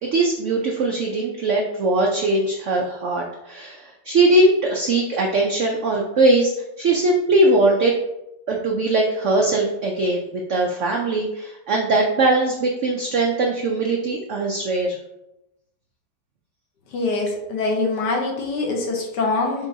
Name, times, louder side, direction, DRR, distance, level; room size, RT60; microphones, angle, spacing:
voice 1, 0.0-6.5 6.8-7.9 8.5-15.0, right 2 dB, 85° right, 0 dB, 0.6 m, -20 dB
voice 2, 16.9-19.7, left 3 dB, 70° left, 1 dB, 1.5 m, -24 dB
5.2 x 3.4 x 2.7 m, 0.90 s
omnidirectional pair, 1.9 m